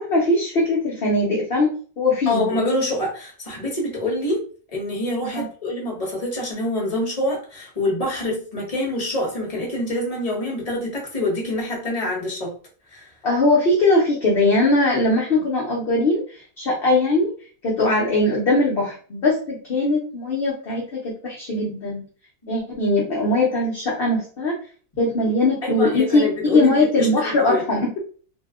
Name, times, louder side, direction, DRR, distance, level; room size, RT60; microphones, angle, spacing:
voice 1, 0.0-1.7 2.0-2.5 5.3-5.5 13.2-17.3 17.6-22.0 22.5-24.5 25.0-27.9, left 2 dB, 50° left, -3 dB, 0.8 m, -20 dB
voice 2, 2.3-4.4 4.7-12.5 12.9-13.1 22.4-22.5 25.6-27.1 27.4-27.6, left 1 dB, 25° left, -2 dB, 1.0 m, -26 dB
2.7 x 2.2 x 3.5 m, 0.40 s
omnidirectional pair, 1.6 m